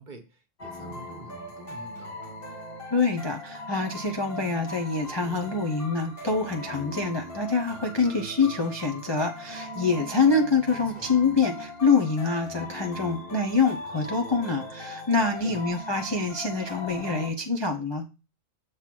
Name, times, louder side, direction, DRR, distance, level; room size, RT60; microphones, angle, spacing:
voice 1, 0.0-2.4 10.7-11.1 15.4-15.7, right 2 dB, 40° right, 5 dB, 1.0 m, -47 dB
sound 1, 0.6-17.3, left 1 dB, 45° left, 1.7 m, -39 dB
voice 2, 2.9-18.0, left 4 dB, 30° left, 1 dB, 0.5 m, -25 dB
7.2 x 3.2 x 6.0 m, 0.30 s
omnidirectional pair, 1.4 m